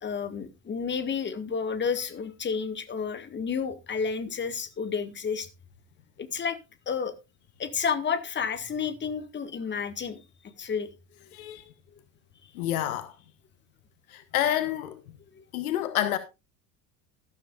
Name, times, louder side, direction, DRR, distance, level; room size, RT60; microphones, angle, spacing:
voice 1, 0.0-5.5 6.2-6.6 6.9-7.1 7.6-10.2 10.6-10.9 15.4-15.5, left 6 dB, 20° left, 1.7 m, -31 dB
voice 2, 11.3-11.6 12.5-13.2 14.1-15.0 15.5-16.2, left 12 dB, 60° left, 1.1 m, -28 dB
13.5 x 12.5 x 2.4 m
figure-of-eight pair, 70°, 48 cm